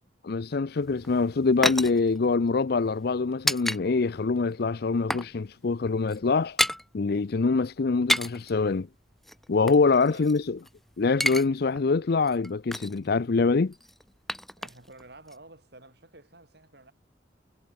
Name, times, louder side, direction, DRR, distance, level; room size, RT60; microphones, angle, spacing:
voice 1, 0.2-6.6 6.9-8.9 9.5-10.6 11.0-13.7, left 4 dB, 55° left, 0.5 m, -24 dB
sound 1, 0.8-3.8 4.1-4.3 4.6-5.3 5.6-5.7 6.0-6.8 7.9-8.5 9.2-10.7 11.0-11.5 11.8-11.9 12.2-13.0 13.7-15.0 15.3-15.4, equal, ahead, 0.6 m, -30 dB
voice 2, 9.8-10.3 14.6-16.9, right 2 dB, 60° right, 7.3 m, -51 dB
head